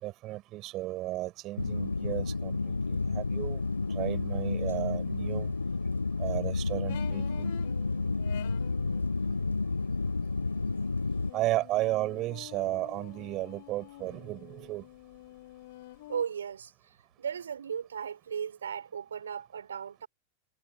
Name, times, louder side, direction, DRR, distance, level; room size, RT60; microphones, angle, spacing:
voice 1, 0.0-3.6 3.9-5.5 6.2-7.5 11.3-14.8, right 16 dB, 35° right, 5.1 m, -34 dB
sound 1, 1.6-11.3, left 3 dB, 80° left, 1.3 m, -31 dB
sound 2, 6.9-9.1 11.2-16.2, left 16 dB, 55° left, 3.4 m, -48 dB
voice 2, 16.1-16.7 17.2-20.1, right 7 dB, 70° right, 4.2 m, -36 dB
figure-of-eight pair, 90°, 0 cm